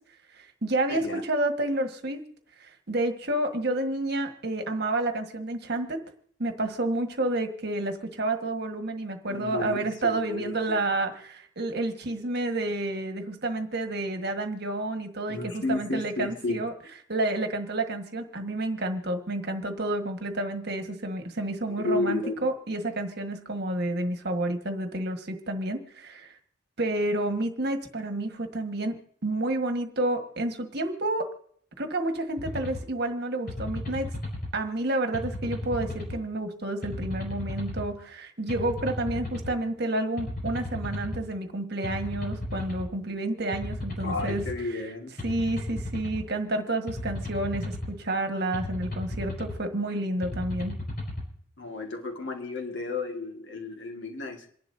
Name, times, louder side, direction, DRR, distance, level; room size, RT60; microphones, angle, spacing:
voice 1, 0.3-2.2 2.6-6.0 6.4-16.7 17.1-26.3 26.8-28.9 29.2-31.3 31.8-34.1 34.5-44.4 45.2-50.8, right 2 dB, 60° right, 5 dB, 1.5 m, -30 dB
voice 2, 0.9-1.2 9.2-10.8 15.3-16.6 21.7-22.5 44.0-45.1 51.6-54.5, left 2 dB, 70° left, 2 dB, 1.9 m, -32 dB
sound 1, 32.4-32.8 33.5-34.5 35.1-36.2 36.8-37.9 38.5-39.5 40.2-41.2 41.8-42.9 43.5-44.6 45.2-46.2 46.9-47.9 48.5-49.6 50.2-51.2, left 1 dB, 50° left, 5.3 m, -34 dB
27.5 x 11.5 x 2.7 m, 0.62 s
head